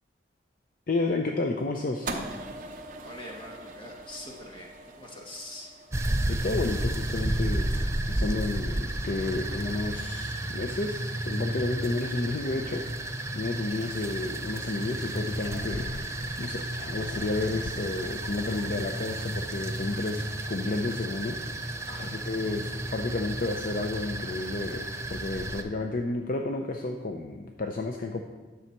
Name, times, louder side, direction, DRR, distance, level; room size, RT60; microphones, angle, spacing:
voice 1, 0.9-2.1 6.3-21.7 22.0-28.2, left 2 dB, 50° left, 3 dB, 0.5 m, -31 dB
sound 1, 2.0-8.4, right 2 dB, 45° right, 0.8 m, -42 dB
voice 2, 3.0-5.7 21.9-22.3, left 1 dB, 25° left, -1 dB, 1.5 m, -44 dB
sound 2, 5.9-25.6, right 1 dB, 15° right, 0.5 m, -32 dB
sound 3, 15.4-19.4 19.7-19.9 20.3-20.4, left 1 dB, 85° left, 0.8 m, -42 dB
10.0 x 6.4 x 4.6 m, 1.3 s
head